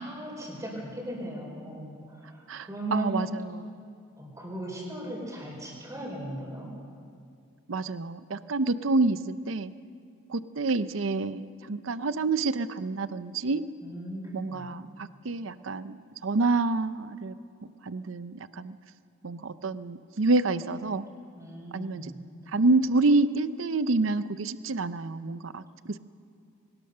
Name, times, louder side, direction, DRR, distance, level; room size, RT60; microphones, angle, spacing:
voice 1, 0.0-3.2 4.2-6.7 13.8-14.6 21.4-22.2, right 1 dB, 15° right, -2 dB, 4.9 m, -37 dB
voice 2, 2.5-3.7 7.7-9.7 10.3-13.6 14.3-17.3 17.8-18.8 19.2-21.1 21.7-22.1 22.5-26.0, right 3 dB, 70° right, 13 dB, 0.6 m, -28 dB
23.0 x 19.0 x 6.7 m, 2.4 s
head